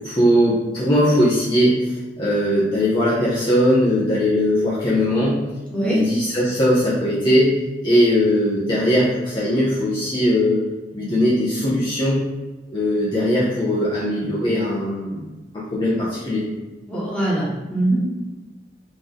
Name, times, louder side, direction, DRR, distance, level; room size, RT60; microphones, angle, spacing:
voice 1, 0.0-1.8 2.2-5.4 5.8-7.5 7.8-10.6 10.9-12.2 12.7-15.2 15.5-16.5, equal, 25° left, -8 dB, 0.9 m, -19 dB
voice 2, 5.7-6.0 16.9-18.1, right 1 dB, 5° left, -7 dB, 1.4 m, -22 dB
4.1 x 3.3 x 3.8 m, 1.2 s
head